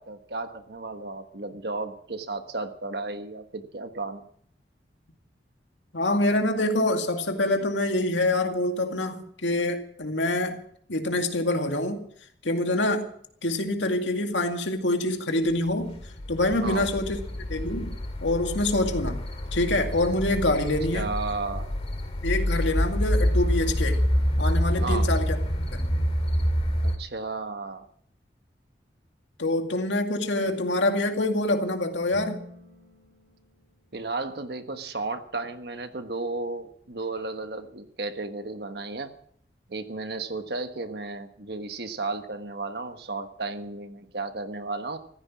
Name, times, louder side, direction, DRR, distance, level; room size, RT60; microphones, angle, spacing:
voice 1, 0.0-4.3 16.6-16.9 20.9-21.7 24.8-25.1 26.8-27.8 33.9-39.1 39.7-45.0, right 3 dB, 65° right, 1.4 m, -33 dB
voice 2, 5.9-10.6 10.9-12.0 12.4-13.1 13.4-16.0 16.3-17.2 17.5-17.9 18.2-19.3 19.5-21.1 22.2-24.0 24.4-25.4 25.7-25.9 29.4-32.4, left 1 dB, 90° left, 2.2 m, -26 dB
sound 1, 15.7-27.0, equal, 35° left, 2.3 m, -27 dB
sound 2, 32.1-34.5, left 2 dB, 80° right, 7.7 m, -46 dB
15.0 x 14.5 x 6.1 m
head